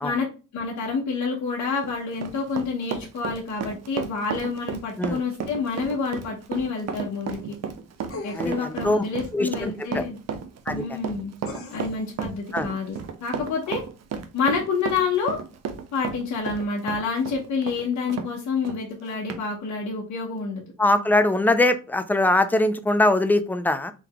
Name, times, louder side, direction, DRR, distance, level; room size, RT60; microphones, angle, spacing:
voice 1, 0.5-7.5 8.2-10.2 10.7-11.3 11.7-13.8 14.3-15.4 15.9-20.6, left 5 dB, 70° left, -3 dB, 1.3 m, -28 dB
Run, 1.6-18.3 18.6-18.8 19.3-19.4, right 7 dB, 60° right, 0.7 m, -33 dB
sound 1, 8.1-8.8 11.5-12.1 12.9-13.0, left 3 dB, 45° left, 1.2 m, -39 dB
voice 2, 8.3-9.0 9.3-10.0 10.7-10.8 12.5-12.7 20.8-23.9, left 2 dB, 5° left, 10 dB, 0.5 m, -22 dB
3.8 x 2.9 x 3.5 m, 0.32 s
cardioid pair, 90°, 30 cm